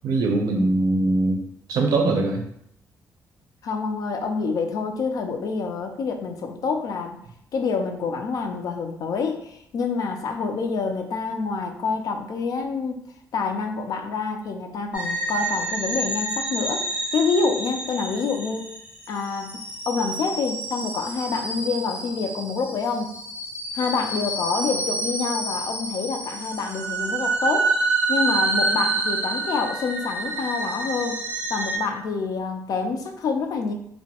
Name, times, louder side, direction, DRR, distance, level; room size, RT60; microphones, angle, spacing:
voice 1, 0.0-1.4 1.7-2.4, right 2 dB, 80° right, 2 dB, 0.4 m, -21 dB
voice 2, 3.6-7.2 7.5-13.0 13.3-18.7 19.1-23.1 23.7-27.7 28.1-31.2 31.5-33.7, left 4 dB, 65° left, 5 dB, 0.4 m, -27 dB
sound 1, 14.9-31.8, right 2 dB, 20° right, 0.6 m, -28 dB
2.2 x 2.1 x 2.8 m, 0.71 s
cardioid pair, 110°, 7 cm